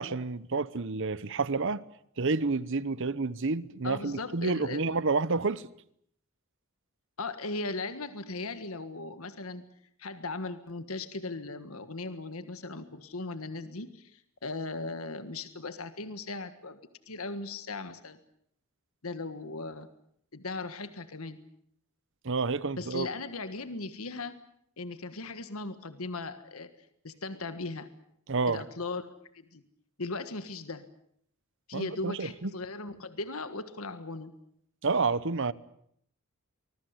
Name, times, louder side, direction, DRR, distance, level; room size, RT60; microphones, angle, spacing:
voice 1, 0.0-1.8 2.2-5.7 22.2-23.1 28.3-28.6 31.7-32.5 34.8-35.5, right 4 dB, 60° right, 0.9 m, -29 dB
voice 2, 3.8-4.8 7.2-9.6 10.0-16.8 17.1-18.2 19.0-19.9 20.3-21.4 22.8-24.4 24.8-26.7 27.0-27.9 28.5-29.6 30.0-30.9 31.7-34.3, left 3 dB, 75° left, 1.6 m, -38 dB
24.5 x 21.0 x 8.1 m
head